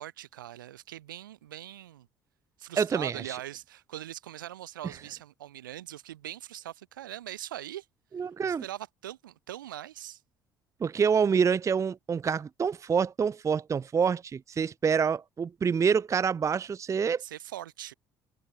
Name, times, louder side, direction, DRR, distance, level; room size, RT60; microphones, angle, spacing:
voice 1, 0.0-2.1 2.6-7.9 8.5-10.2 17.2-17.9, right 13 dB, 80° right, 1.8 m, -41 dB
voice 2, 2.8-3.4 8.1-8.6 10.8-17.2, right 6 dB, 30° right, 0.6 m, -27 dB
figure-of-eight pair, 55°, 11 cm